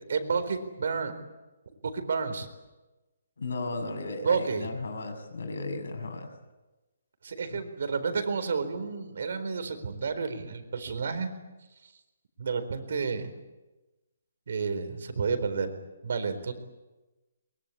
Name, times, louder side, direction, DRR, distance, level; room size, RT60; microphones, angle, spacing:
voice 1, 0.1-1.1 1.8-2.5 4.2-4.7 7.2-11.3 12.4-13.3 14.5-15.7 16.0-16.5, right 5 dB, 55° right, 9 dB, 4.3 m, -30 dB
voice 2, 3.4-6.3 7.5-7.6, left 2 dB, 80° left, 7 dB, 7.2 m, -35 dB
24.0 x 23.5 x 8.6 m, 1.1 s
hypercardioid pair, 175°, 0 cm